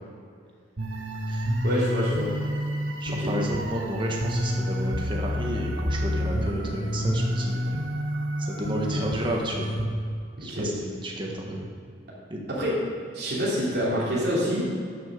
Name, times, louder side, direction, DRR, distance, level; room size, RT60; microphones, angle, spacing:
sound 1, 0.8-9.8, equal, 85° right, 1.4 m, -28 dB
voice 1, 1.6-2.3 3.2-3.3 10.4-10.7 12.5-12.8 13.1-14.7, equal, 55° right, -7 dB, 3.2 m, -26 dB
voice 2, 3.0-7.7 8.4-9.7 10.4-11.7 12.3-12.4, right 1 dB, 25° right, -1 dB, 1.5 m, -31 dB
12.0 x 6.6 x 6.8 m, 2.3 s
head